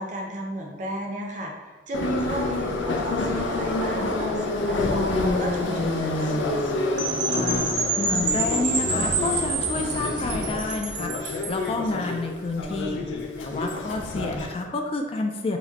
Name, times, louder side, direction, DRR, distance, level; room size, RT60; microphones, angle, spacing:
voice 1, 0.0-6.3, right 1 dB, 40° right, 0 dB, 0.6 m, -34 dB
Subway metro underground, 1.9-14.5, left 2 dB, 85° left, 0.5 m, -27 dB
Percussion / Wind chime, 7.0-11.7, right 3 dB, 70° right, 0.8 m, -28 dB
voice 2, 7.3-13.0 13.4-15.6, left 2 dB, 30° left, 3 dB, 0.3 m, -29 dB
4.8 x 2.2 x 3.9 m, 1.3 s
head